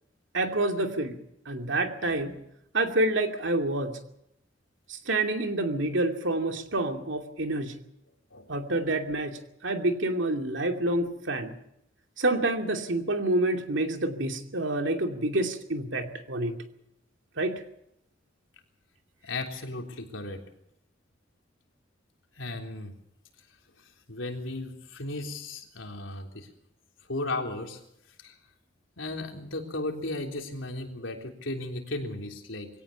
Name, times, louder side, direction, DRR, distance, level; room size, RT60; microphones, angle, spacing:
voice 1, 0.3-1.2 1.5-2.4 2.7-4.0 4.9-7.8 8.5-11.5 12.2-16.5 17.4-17.6, right 2 dB, 70° right, 5 dB, 2.6 m, -28 dB
voice 2, 19.2-20.4 22.4-22.9 24.1-26.5 27.1-27.8 28.2-28.3 29.0-32.7, left 2 dB, 90° left, 3 dB, 3.6 m, -35 dB
22.5 x 17.5 x 7.1 m, 0.76 s
head